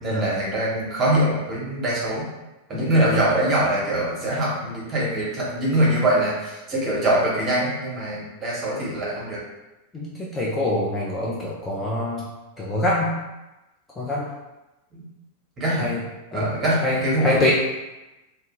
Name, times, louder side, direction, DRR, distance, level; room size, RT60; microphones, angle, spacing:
voice 1, 0.0-2.3 2.7-9.4 14.9-15.0 15.6-15.9 16.3-17.5, right 1 dB, 25° right, -5 dB, 0.8 m, -23 dB
voice 2, 2.7-3.1 9.9-12.3 12.6-13.2 14.0-14.3 15.8-16.0 16.3-16.5 16.8-17.5, left 1 dB, 15° left, -5 dB, 0.4 m, -25 dB
2.1 x 2.0 x 2.9 m, 1.0 s
figure-of-eight pair, 90°, 0 cm